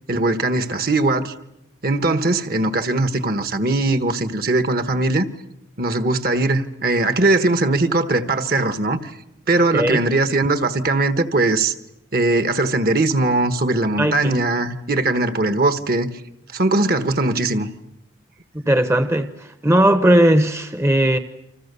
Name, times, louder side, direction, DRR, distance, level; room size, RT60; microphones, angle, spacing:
voice 1, 0.1-1.3 1.8-5.3 5.8-9.1 9.5-11.7 12.1-16.1 16.5-17.7, right 2 dB, 50° right, 1.4 m, -20 dB
voice 2, 14.0-14.4 18.5-21.2, right 1 dB, 15° right, 0.9 m, -17 dB
29.0 x 26.0 x 6.9 m
head